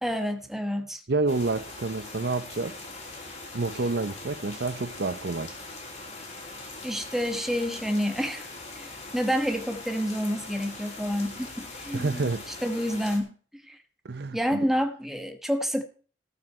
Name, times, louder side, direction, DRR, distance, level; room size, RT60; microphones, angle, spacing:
voice 1, 0.0-1.0 6.8-8.5 8.7-13.3 13.6-13.8 14.3-15.8, equal, ahead, 1.4 m, -29 dB
voice 2, 1.1-2.8 3.5-5.5 11.9-12.4 14.0-14.7, right 3 dB, 60° right, 0.7 m, -29 dB
sound 1, 1.3-13.2, left 3 dB, 40° left, 3.4 m, -41 dB
18.5 x 6.3 x 4.4 m
head